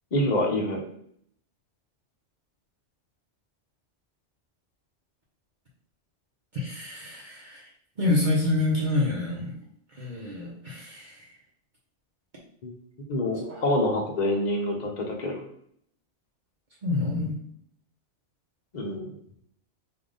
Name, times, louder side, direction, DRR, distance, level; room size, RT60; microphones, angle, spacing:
voice 1, 0.1-0.8 12.6-12.7 13.1-15.5 18.7-19.1, left 1 dB, 45° left, 1 dB, 0.8 m, -26 dB
voice 2, 6.5-7.7 8.0-9.6 10.0-11.3 13.5-13.6 16.8-17.4, left 2 dB, 45° right, -4 dB, 0.8 m, -27 dB
3.4 x 2.6 x 3.8 m, 0.66 s
omnidirectional pair, 1.2 m